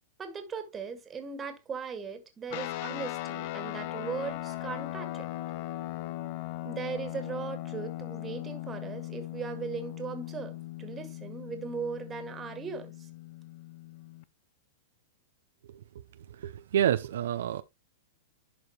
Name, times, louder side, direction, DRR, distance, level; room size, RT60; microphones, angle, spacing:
voice 1, 0.2-5.3 6.6-13.1, right 6 dB, 20° right, 1.9 m, -38 dB
sound 1, 2.5-14.2, left 15 dB, 50° left, 0.7 m, -39 dB
voice 2, 16.3-17.6, right 10 dB, 75° right, 0.7 m, -28 dB
11.5 x 4.8 x 3.1 m
hypercardioid pair, 135°, 0 cm